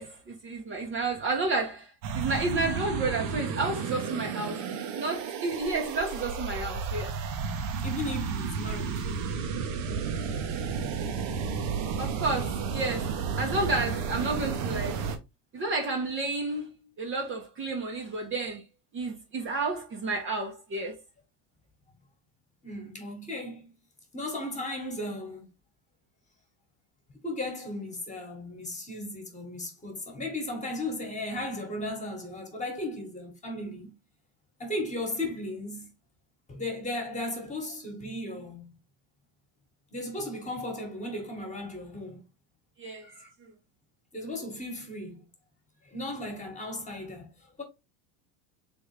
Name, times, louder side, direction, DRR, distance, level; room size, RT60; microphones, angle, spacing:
voice 1, 0.0-1.9 2.1-4.6 5.0-7.1 12.0-15.0 15.5-16.7 17.0-18.6 18.9-21.0 42.8-43.1, right 3 dB, 30° right, 0.9 m, -31 dB
sound 1, 2.0-15.2, right 5 dB, 65° right, 1.1 m, -32 dB
voice 2, 7.8-9.0 22.6-23.7 24.1-25.5 27.2-33.9 34.6-35.9 36.5-38.7 39.9-42.2 43.0-43.3 44.1-45.3 45.8-47.3 47.6-47.7, left 1 dB, 15° left, 1.4 m, -36 dB
3.6 x 3.5 x 3.2 m
supercardioid pair, 125°, 44 cm